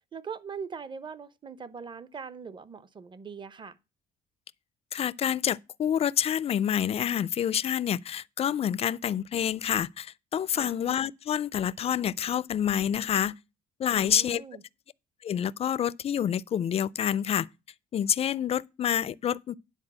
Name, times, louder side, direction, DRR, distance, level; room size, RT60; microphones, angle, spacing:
voice 1, 0.1-3.8 10.5-10.7 13.9-14.6, right 6 dB, 30° right, 0.8 m, -41 dB
voice 2, 4.9-13.3 13.8-14.4 15.2-17.5 17.9-19.6, left 9 dB, 35° left, 0.4 m, -28 dB
9.9 x 4.1 x 7.4 m
cardioid pair, 110°, 17 cm